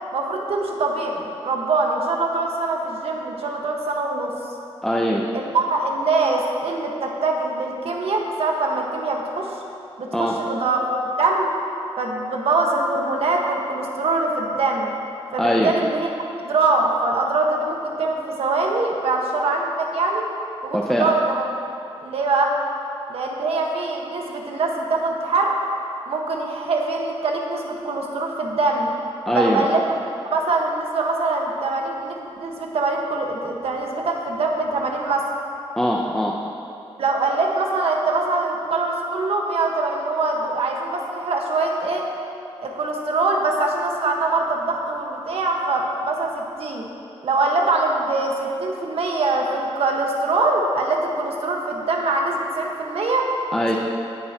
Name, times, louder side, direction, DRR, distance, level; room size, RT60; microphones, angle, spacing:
voice 1, 0.1-4.3 5.3-9.5 10.0-11.5 12.0-14.9 15.3-16.1 16.4-20.2 20.6-21.4 22.0-22.5 23.1-25.5 26.1-28.9 29.3-29.9 30.3-35.3 37.0-42.0 42.6-46.9 47.2-53.3, right 3 dB, 75° right, 0 dB, 1.5 m, -23 dB
voice 2, 4.8-5.3 10.1-10.4 15.4-15.7 20.7-21.1 29.3-29.6 35.8-36.4 53.5-53.8, equal, 5° left, -2 dB, 0.7 m, -21 dB
18.0 x 10.5 x 3.0 m, 2.7 s
wide cardioid pair, 150°, 10 cm